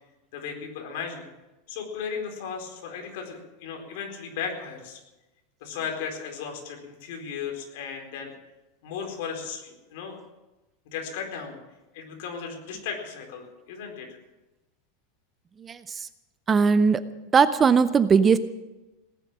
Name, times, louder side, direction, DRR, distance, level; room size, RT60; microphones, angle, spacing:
voice 1, 0.3-1.2 1.7-5.0 5.6-8.3 8.8-10.2 10.9-11.6 11.9-14.2, left 6 dB, 65° left, 2 dB, 4.4 m, -35 dB
voice 2, 15.6-16.1 16.5-17.0 17.3-18.4, right 5 dB, 15° right, 13 dB, 0.5 m, -19 dB
18.5 x 10.5 x 7.5 m, 1.0 s
supercardioid pair, 160°, 0 cm